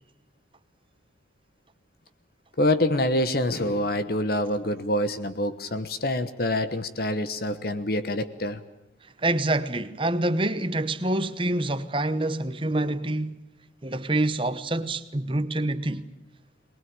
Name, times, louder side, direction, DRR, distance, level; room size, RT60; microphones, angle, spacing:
voice 1, 2.6-8.6, left 1 dB, 50° left, 1.2 m, -26 dB
voice 2, 9.2-13.4 13.8-16.1, right 2 dB, 25° right, 1.1 m, -26 dB
22.5 x 20.5 x 8.9 m
head